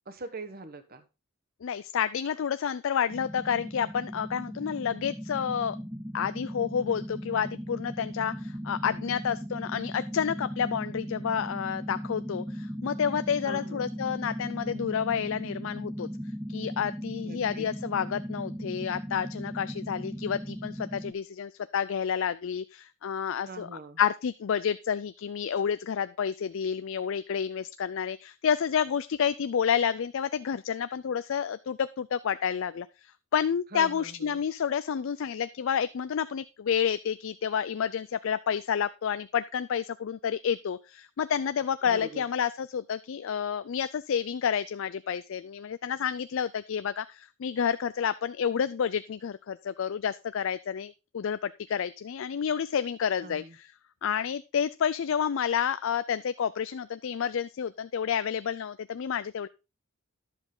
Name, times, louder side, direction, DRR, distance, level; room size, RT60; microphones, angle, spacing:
voice 1, 0.1-1.0 13.4-13.9 17.2-17.7 23.5-24.0 33.7-34.3 41.8-42.2 53.2-53.5, right 2 dB, 45° right, 9 dB, 1.2 m, -42 dB
voice 2, 1.6-5.8 6.1-16.1 16.5-23.7 24.0-53.7 54.0-59.5, left 7 dB, 65° left, 14 dB, 0.4 m, -30 dB
sound 1, 3.1-21.1, equal, 10° right, 0.7 m, -38 dB
11.0 x 7.2 x 3.8 m, 0.28 s
head